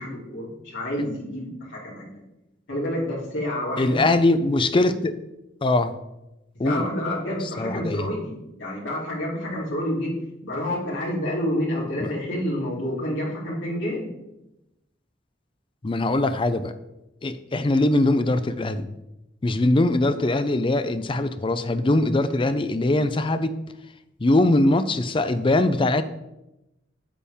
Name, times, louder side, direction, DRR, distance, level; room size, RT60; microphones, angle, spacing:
voice 1, 0.0-2.2 2.7-4.0 6.6-10.2 10.4-14.1, left 1 dB, 80° left, -5 dB, 3.2 m, -29 dB
voice 2, 3.8-5.1 5.6-5.9 6.6-6.8 7.6-8.1 12.0-12.1 15.8-16.7 17.2-18.9 19.4-23.5 24.2-26.0, left 2 dB, 30° left, 11 dB, 0.5 m, -21 dB
8.4 x 7.3 x 3.6 m, 0.92 s
head